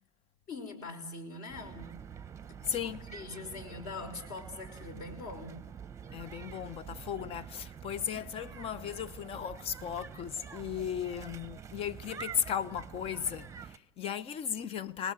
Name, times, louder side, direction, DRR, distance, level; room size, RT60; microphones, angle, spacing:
voice 1, 0.5-2.0 2.8-5.6 6.1-6.2 8.4-8.5, left 3 dB, 45° left, 5.6 m, -43 dB
sound 1, 1.5-13.8, right 7 dB, 15° right, 1.0 m, -47 dB
voice 2, 2.7-3.1 6.1-15.1, left 8 dB, 30° left, 0.9 m, -36 dB
29.5 x 20.5 x 7.6 m
supercardioid pair, 130°, 19 cm